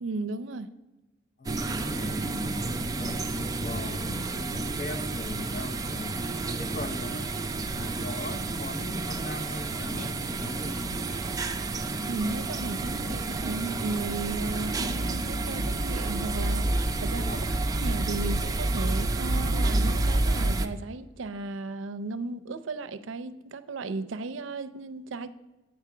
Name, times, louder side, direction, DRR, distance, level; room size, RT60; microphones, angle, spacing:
voice 1, 0.0-0.7 12.1-16.7 17.0-25.3, right 3 dB, 75° right, 13 dB, 0.5 m, -35 dB
voice 2, 1.4-2.4 2.9-6.3 6.6-7.4 7.7-11.0 17.3-17.6, left 2 dB, 40° left, 7 dB, 0.6 m, -40 dB
sound 1, 1.4-20.7, right 2 dB, 20° right, 0.4 m, -29 dB
8.6 x 4.8 x 5.8 m, 1.1 s
head